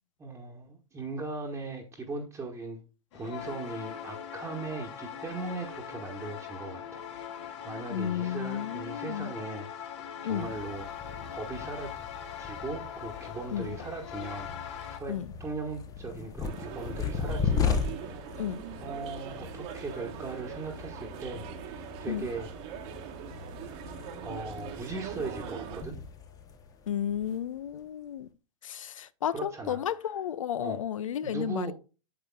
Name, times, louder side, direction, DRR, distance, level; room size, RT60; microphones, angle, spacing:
voice 1, 0.2-2.8 3.1-7.1 7.6-9.7 10.2-12.1 12.4-17.9 18.2-18.4 18.8-22.5 24.2-26.0 29.3-29.8 30.6-30.8 31.2-31.7, right 3 dB, 15° right, 1.2 m, -39 dB
sound 1, 3.1-15.0, left 8 dB, 60° left, 1.6 m, -41 dB
voice 2, 7.9-9.3 10.2-10.5 13.5-13.7 15.1-15.3 18.4-18.6 22.1-22.3 26.9-28.3 28.6-31.7, left 10 dB, 75° left, 0.5 m, -33 dB
sound 2, 10.4-27.8, left 6 dB, 20° left, 0.8 m, -37 dB
sound 3, 16.4-25.8, right 10 dB, 50° right, 1.2 m, -42 dB
8.4 x 7.4 x 2.3 m
hypercardioid pair, 105°, 17 cm